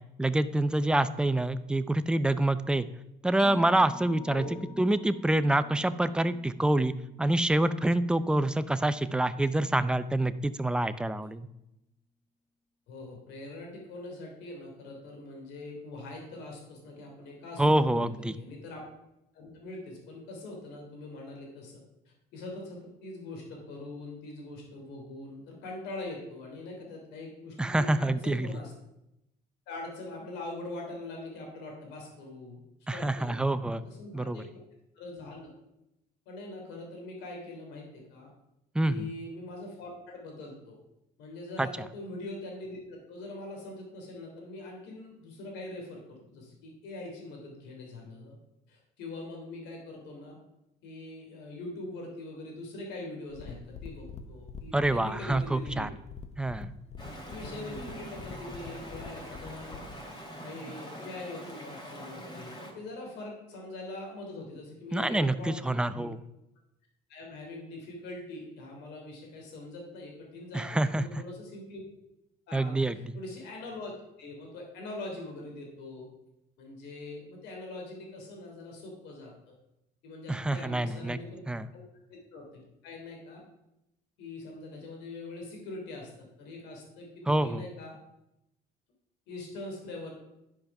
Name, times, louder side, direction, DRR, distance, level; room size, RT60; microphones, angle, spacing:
voice 1, 0.2-2.9 3.2-4.5 4.8-11.5 17.6-18.3 27.6-28.5 32.9-33.8 34.1-34.4 38.7-39.1 41.6-41.7 54.7-55.9 56.4-56.7 64.9-66.2 70.5-71.0 72.5-73.1 80.3-81.2 81.5-81.7 87.3-87.6, right 1 dB, 5° right, 12 dB, 0.4 m, -26 dB
Mallet percussion, 3.4-10.5, left 4 dB, 70° left, 2.3 m, -50 dB
voice 2, 4.2-4.5 12.9-18.8 19.3-21.8 22.0-28.7 29.7-32.6 32.9-33.6 33.8-34.6 34.9-35.5 36.3-38.3 38.8-40.8 41.2-48.4 48.7-50.4 50.8-55.9 57.2-59.8 60.4-66.1 67.1-71.8 72.5-73.9 74.2-76.1 76.6-79.5 80.0-81.4 81.7-81.8 82.1-83.4 84.2-88.0 89.3-90.1, left 2 dB, 90° left, 0 dB, 3.0 m, -43 dB
sound 1, 53.3-60.0, left 4 dB, 40° left, 0.9 m, -45 dB
Stream, 57.0-62.7, equal, 25° left, 2.6 m, -43 dB
12.0 x 5.1 x 5.8 m, 0.88 s
cardioid pair, 110°, 17 cm